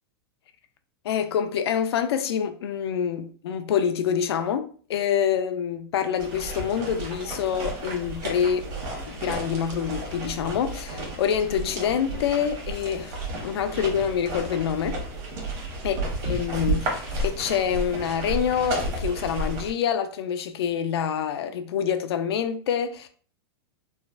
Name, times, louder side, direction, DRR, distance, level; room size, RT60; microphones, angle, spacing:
voice 1, 1.0-8.7 9.1-15.0 15.8-16.0 16.2-23.1, left 8 dB, 80° left, 0.4 m, -26 dB
sound 1, 6.2-19.7, right 2 dB, 45° right, 1.2 m, -32 dB
3.2 x 2.1 x 2.4 m
hypercardioid pair, 125°, 13 cm